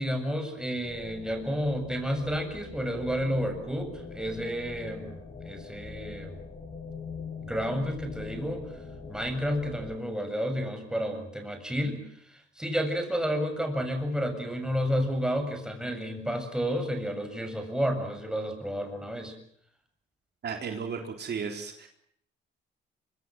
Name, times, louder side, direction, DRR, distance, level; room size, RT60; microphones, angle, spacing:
voice 1, 0.0-5.1 5.4-6.3 7.4-8.6 9.1-12.0 12.3-19.4, equal, 5° right, 5 dB, 7.4 m, -31 dB
sound 1, 0.8-10.0, left 5 dB, 40° left, 6.4 m, -43 dB
voice 2, 20.4-21.9, right 6 dB, 55° right, 4 dB, 3.9 m, -34 dB
25.0 x 24.0 x 7.8 m, 0.68 s
cardioid pair, 90°, 20 cm